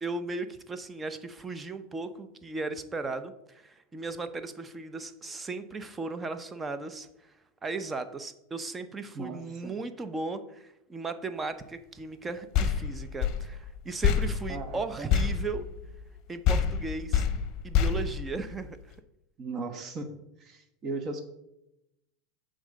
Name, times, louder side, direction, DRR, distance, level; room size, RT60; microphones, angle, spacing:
voice 1, 0.0-7.1 7.6-15.6 16.3-17.3 17.6-18.8, right 3 dB, 20° right, 10 dB, 0.7 m, -36 dB
voice 2, 9.1-9.8 14.5-15.1 19.4-20.1 20.4-21.2, right 3 dB, 35° right, 6 dB, 1.1 m, -37 dB
sound 1, 12.5-16.2 16.4-18.9, left 7 dB, 50° left, 0.7 m, -28 dB
7.1 x 3.7 x 6.5 m, 0.87 s
supercardioid pair, 115°, 0 cm